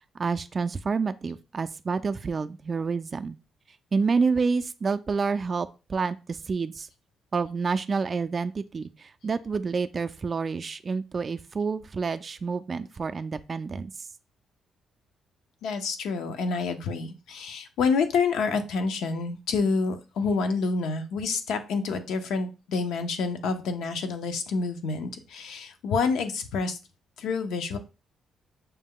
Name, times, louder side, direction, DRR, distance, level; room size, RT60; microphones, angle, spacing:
voice 1, 0.2-3.4 3.9-6.9 7.3-13.9, right 5 dB, 40° right, 10 dB, 0.3 m, -28 dB
voice 2, 15.6-26.8 27.2-27.8, left 4 dB, 80° left, 7 dB, 0.6 m, -28 dB
5.6 x 2.2 x 3.6 m, 0.31 s
cardioid pair, 90°, 0 cm